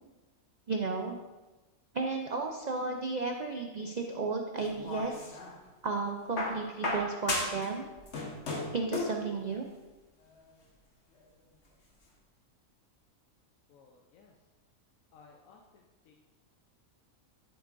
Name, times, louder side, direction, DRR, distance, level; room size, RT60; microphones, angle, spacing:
voice 1, 0.7-1.2 1.9-5.4 5.8-7.9 8.7-9.7, right 4 dB, 75° right, 3 dB, 0.4 m, -33 dB
sound 1, 4.6-5.6 6.4-7.7 8.0-9.2 10.3-10.4, left 2 dB, 50° left, 1.5 m, -34 dB
voice 2, 13.7-14.3 15.1-15.6 16.0-16.1, left 5 dB, 75° left, 1 dB, 1.1 m, -58 dB
10.5 x 7.8 x 2.6 m, 1.2 s
omnidirectional pair, 1.5 m